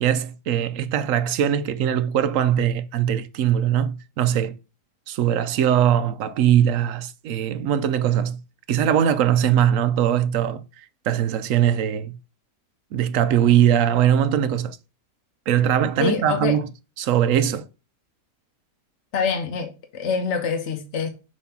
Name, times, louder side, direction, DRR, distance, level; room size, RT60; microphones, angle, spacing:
voice 1, 0.0-4.6 5.1-8.4 8.7-10.6 11.1-12.2 12.9-14.8 15.5-16.7 17.0-17.7, right 10 dB, 70° right, 0.8 m, -21 dB
voice 2, 16.0-16.6 19.1-21.1, left 6 dB, 55° left, 0.9 m, -25 dB
6.8 x 3.2 x 5.9 m
omnidirectional pair, 1.8 m